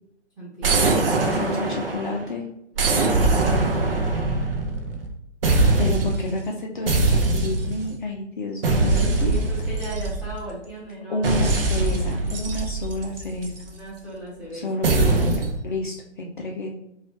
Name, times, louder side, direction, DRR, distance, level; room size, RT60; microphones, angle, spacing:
voice 1, 0.4-1.3 8.6-11.4 13.6-15.4, right 1 dB, ahead, -8 dB, 1.1 m, -37 dB
sound 1, 0.6-2.2 2.8-5.1 5.4-6.3 6.9-7.9 8.6-10.5 11.2-13.6 14.8-15.6, right 2 dB, 50° right, 0.6 m, -22 dB
voice 2, 1.3-2.4 5.8-9.4 11.1-13.5 14.5-16.7, left 2 dB, 45° left, 0 dB, 0.5 m, -30 dB
4.1 x 2.5 x 2.8 m, 0.82 s
figure-of-eight pair, 140°, 36 cm